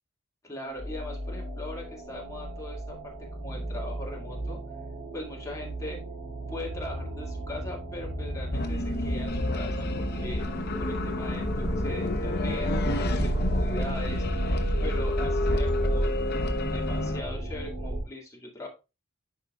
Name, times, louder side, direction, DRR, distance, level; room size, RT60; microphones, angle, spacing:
voice 1, 0.4-4.6 5.1-6.0 6.5-10.4 10.8-14.2 14.8-16.2 16.7-18.7, left 1 dB, 15° left, -2 dB, 2.0 m, -40 dB
sound 1, 0.6-18.0, right 1 dB, 65° right, 2.6 m, -32 dB
sound 2, 8.5-17.2, left 2 dB, 45° left, 0.9 m, -31 dB
11.0 x 4.8 x 2.3 m, 0.28 s
head